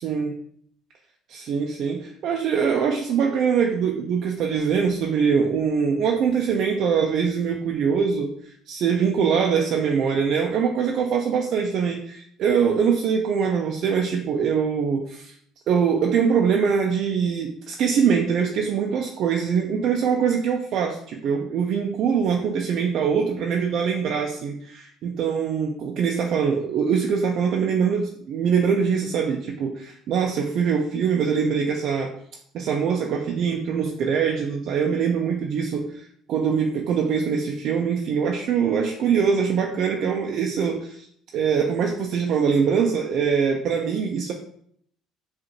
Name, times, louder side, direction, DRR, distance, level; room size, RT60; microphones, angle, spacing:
voice 1, 0.0-0.4 1.3-15.4 15.7-32.1 32.5-41.1 41.3-44.3, right 6 dB, 65° right, 2 dB, 0.4 m, -23 dB
5.1 x 2.5 x 2.8 m, 0.65 s
supercardioid pair, 95°, 0 cm